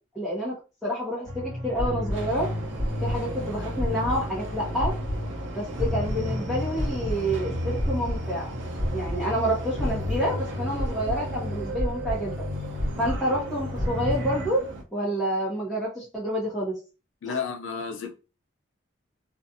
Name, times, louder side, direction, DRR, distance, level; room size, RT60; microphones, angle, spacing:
voice 1, 0.1-0.5 0.8-2.5 3.0-4.9 5.5-8.5 8.9-12.3 13.0-14.6 14.9-16.7 17.2-17.4, equal, ahead, 0.9 m, -28 dB
sound 1, 1.2-14.5, left 1 dB, 45° right, 1.3 m, -30 dB
Subway metro underground, 2.1-14.8, right 3 dB, 75° right, 0.6 m, -39 dB
voice 2, 17.2-18.1, left 6 dB, 80° left, 0.5 m, -31 dB
2.5 x 2.3 x 2.7 m
head